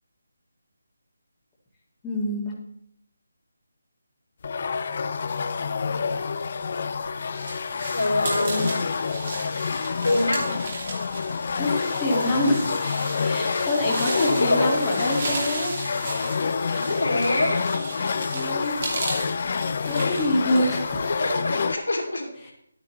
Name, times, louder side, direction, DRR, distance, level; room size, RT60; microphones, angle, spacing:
voice 1, 2.0-2.5 11.6-11.7 12.0-12.7 13.2-15.7 18.3-18.8 19.9-21.1 22.4-22.5, left 1 dB, 10° left, -6 dB, 1.8 m, -26 dB
sound 1, 4.4-21.8, left 5 dB, 45° left, 0.5 m, -27 dB
sound 2, 6.6-21.7, right 2 dB, 45° right, 2.5 m, -36 dB
voice 2, 7.9-8.7 10.0-10.6 14.1-14.7 16.7-17.6 20.6-20.8 21.1-22.2, left 2 dB, 80° left, 0 dB, 2.6 m, -25 dB
11.0 x 9.0 x 3.1 m, 0.73 s
figure-of-eight pair, 155°, 0 cm